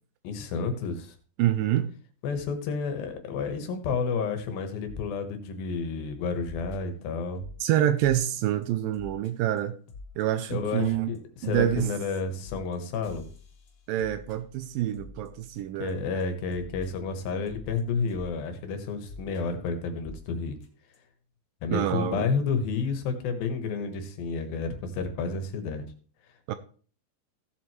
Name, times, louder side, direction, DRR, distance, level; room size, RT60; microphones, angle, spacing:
voice 1, 0.2-1.1 2.2-7.4 10.5-13.2 15.8-20.6 21.6-25.9, left 5 dB, 75° left, 3.0 m, -30 dB
voice 2, 1.4-1.9 7.6-9.8 10.2-11.1 11.4-11.9 13.9-16.0 21.7-22.2 26.5-26.6, right 12 dB, 80° right, 2.2 m, -26 dB
sound 1, 4.8-5.1 5.5-5.7 6.4-7.6 8.0-8.3 8.6-8.7 8.9-9.3 9.6-9.7 9.9-10.2 10.5-10.9 11.1-15.9 16.2-16.3 16.5-18.3 19.0-19.4 20.0-20.2 20.6-20.7 20.9-21.0, left 3 dB, 55° left, 2.0 m, -45 dB
16.0 x 7.6 x 3.1 m
omnidirectional pair, 4.4 m